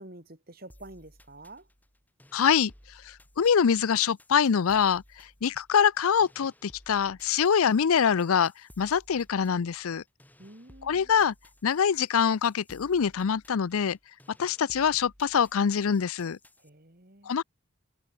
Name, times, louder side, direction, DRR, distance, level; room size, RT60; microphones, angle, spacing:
voice 1, 0.0-1.7 10.4-11.1 16.6-17.4, right 1 dB, 45° right, 3.0 m, -48 dB
sound 1, 0.7-16.7, left 1 dB, 10° left, 6.2 m, -58 dB
voice 2, 2.3-2.7 3.1-5.0 5.4-8.5 8.8-10.0 10.8-11.3 11.6-14.0 14.4-16.4 17.3-17.4, left 7 dB, 85° left, 0.5 m, -24 dB
head